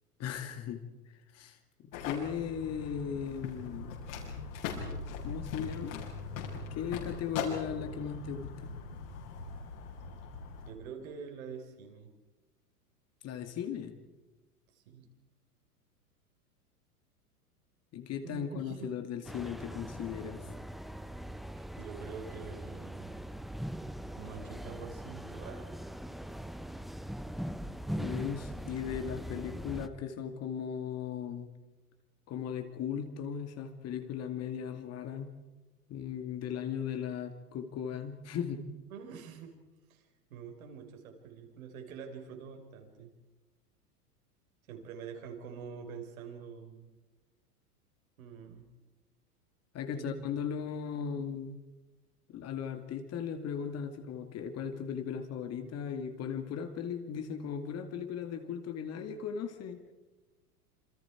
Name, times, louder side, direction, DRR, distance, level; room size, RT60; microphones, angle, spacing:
voice 1, 0.2-0.8 1.3-4.0 4.9-6.0 6.5-8.8 13.2-14.0 17.9-20.5 27.9-31.5 32.3-35.3 35.9-38.7 49.7-51.6 52.3-59.8, left 7 dB, 35° left, 7 dB, 2.4 m, -37 dB
sound 1, 1.9-10.7, left 5 dB, 60° left, 6.6 m, -40 dB
voice 2, 10.6-12.1 14.7-15.1 18.2-19.0 21.5-23.1 24.2-25.7 26.2-26.4 38.9-39.6 39.9-40.0 40.3-43.1 44.7-46.9 48.2-48.6 49.9-50.2, right 6 dB, 60° right, 3 dB, 5.2 m, -46 dB
sound 2, 19.2-29.9, equal, ahead, 0.9 m, -41 dB
27.5 x 27.0 x 4.7 m, 1.2 s
figure-of-eight pair, 95°, 46 cm